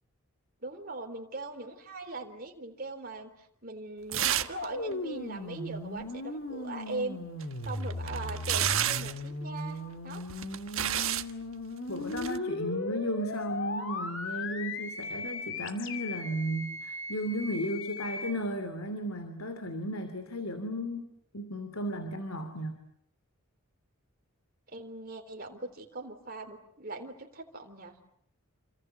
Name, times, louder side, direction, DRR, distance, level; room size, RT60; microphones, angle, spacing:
voice 1, 0.6-7.2 7.6-10.2 24.7-28.0, right 2 dB, 40° right, 4 dB, 3.7 m, -40 dB
sound 1, 4.1-4.7 4.9-5.0 7.4-9.2 10.1-11.3 12.1-12.4, right 11 dB, 65° right, 1.4 m, -30 dB
sound 2, 4.5-18.3, left 2 dB, 55° left, 2.6 m, -37 dB
voice 2, 11.9-21.1 21.3-22.8, equal, 70° left, 8 dB, 3.0 m, -34 dB
28.5 x 26.0 x 7.8 m, 0.71 s
head